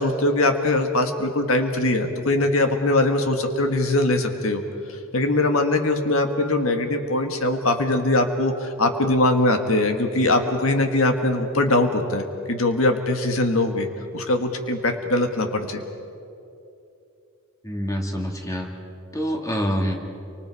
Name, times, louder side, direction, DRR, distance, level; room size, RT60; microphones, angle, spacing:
voice 1, 0.0-4.6 5.1-15.8, left 2 dB, 80° left, 5 dB, 1.7 m, -21 dB
voice 2, 17.6-18.7 19.1-20.0, equal, 15° left, 2 dB, 2.2 m, -26 dB
29.5 x 25.0 x 4.9 m, 2.7 s
head